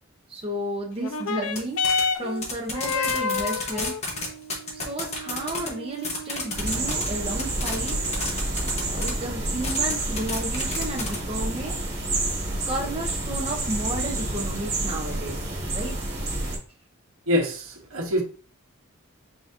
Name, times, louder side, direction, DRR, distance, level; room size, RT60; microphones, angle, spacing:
voice 1, 0.3-4.0 4.7-8.0 8.9-11.8 12.6-15.4 15.7-16.0, right 1 dB, 25° right, 0.7 m, -32 dB
sound 1, 1.0-9.9 10.8-10.9, left 4 dB, 85° left, 0.5 m, -32 dB
sound 2, 1.5-1.6 1.8-2.0 2.4-5.7 6.0-7.1 7.4-9.1 9.6-11.1, left 3 dB, 30° left, 1.0 m, -30 dB
sound 3, 6.5-16.6, right 2 dB, 50° right, 1.7 m, -29 dB
voice 2, 17.3-18.2, left 1 dB, 80° right, 1.1 m, -25 dB
4.9 x 3.8 x 2.6 m
head